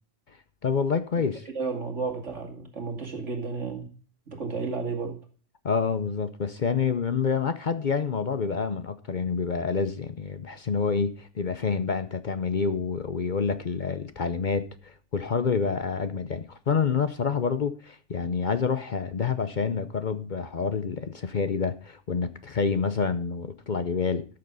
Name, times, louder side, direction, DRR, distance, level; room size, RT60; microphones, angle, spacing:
voice 1, 0.6-1.5 5.6-24.2, left 5 dB, 45° left, 0.8 m, -28 dB
voice 2, 1.5-3.9 4.3-5.2, right 4 dB, 75° right, 2.9 m, -32 dB
13.0 x 6.8 x 5.4 m
omnidirectional pair, 1.2 m